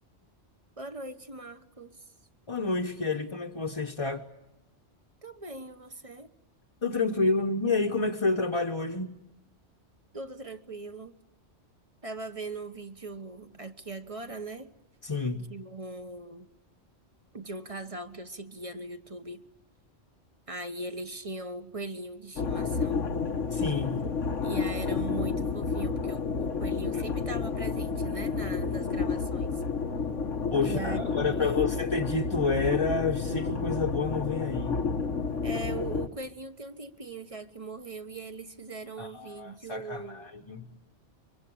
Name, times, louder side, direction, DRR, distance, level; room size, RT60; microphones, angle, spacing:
voice 1, 0.8-2.0 5.2-6.3 10.1-11.1 12.0-14.7 15.3-16.5 17.3-19.4 20.5-23.0 24.4-29.6 30.6-31.8 35.4-40.3, right 2 dB, 30° right, 1.3 m, -40 dB
voice 2, 2.5-4.2 6.8-9.2 15.0-15.5 23.5-24.1 26.9-27.0 30.5-34.8 39.0-40.7, left 3 dB, 25° left, 1.1 m, -29 dB
sound 1, 22.4-36.1, left 5 dB, 90° left, 1.6 m, -30 dB
24.0 x 24.0 x 8.7 m
omnidirectional pair, 1.2 m